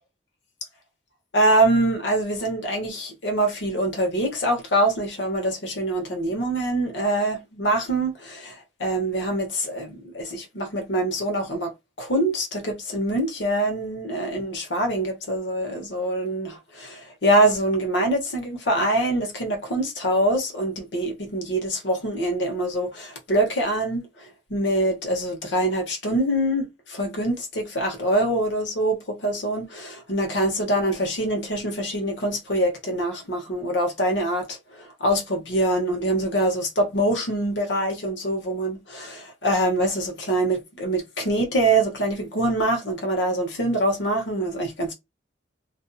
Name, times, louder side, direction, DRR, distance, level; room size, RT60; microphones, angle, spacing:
voice 1, 1.3-11.7 12.0-44.9, right 1 dB, 75° left, 1.0 m, -24 dB
2.6 x 2.5 x 2.3 m
head